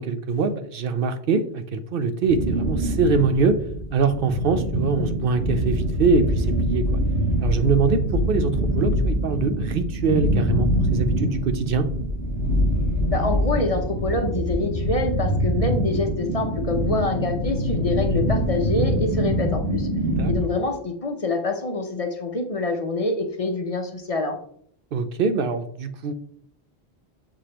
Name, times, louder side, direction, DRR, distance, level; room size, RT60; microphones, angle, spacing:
voice 1, 0.0-3.6 3.9-7.0 7.4-11.9 20.2-20.3 24.9-26.1, right 4 dB, 65° right, 9 dB, 0.7 m, -23 dB
sound 1, 2.3-20.4, equal, 85° right, 2.4 m, -24 dB
voice 2, 13.1-19.9 20.3-24.4, left 2 dB, 40° left, 4 dB, 0.7 m, -26 dB
7.0 x 4.8 x 2.9 m, 0.64 s
omnidirectional pair, 1.0 m